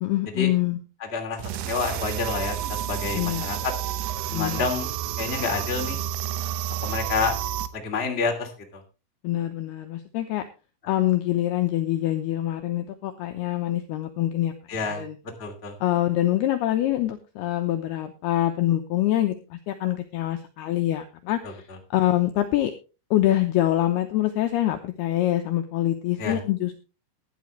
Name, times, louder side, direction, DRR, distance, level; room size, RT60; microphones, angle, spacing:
voice 1, 0.0-0.8 3.1-3.5 4.3-4.7 9.2-10.4 10.9-14.5 15.0-15.2 15.8-21.6 21.9-22.7 23.1-26.7, left 14 dB, 85° left, 6 dB, 2.2 m, -25 dB
voice 2, 1.0-3.7 4.3-4.9 5.2-6.0 6.8-7.4 7.7-8.8 14.7-15.1 15.4-15.7 21.4-21.8 26.2-26.4, left 4 dB, 20° left, 2 dB, 1.6 m, -29 dB
sound 1, 1.4-7.7, right 11 dB, 80° right, 2.9 m, -30 dB
15.5 x 11.5 x 3.2 m, 0.31 s
omnidirectional pair, 5.9 m